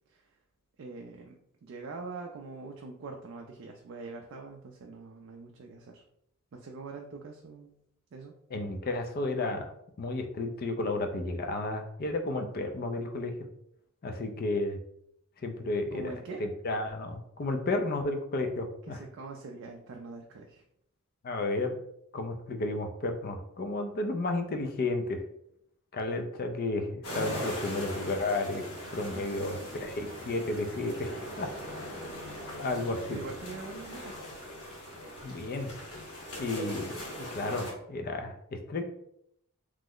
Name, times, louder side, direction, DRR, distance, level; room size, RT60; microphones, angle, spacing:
voice 1, 0.8-6.0 6.5-7.8 8.1-8.3 15.9-16.4 18.9-20.6 29.0-30.0 33.1-34.1, right 3 dB, 60° right, 2 dB, 0.3 m, -44 dB
voice 2, 8.5-9.7 10.0-13.3 14.0-14.8 15.4-16.1 16.4-19.0 21.2-21.8 22.1-25.2 25.9-28.6 28.9-31.1 31.4-32.0 32.6-33.2 35.2-35.7 36.4-38.8, left 2 dB, 45° left, 5 dB, 0.4 m, -32 dB
sound 1, 27.0-37.7, equal, 85° left, 1.0 m, -40 dB
sound 2, 29.0-34.7, equal, 25° left, 0.8 m, -54 dB
3.1 x 2.0 x 3.7 m, 0.74 s
head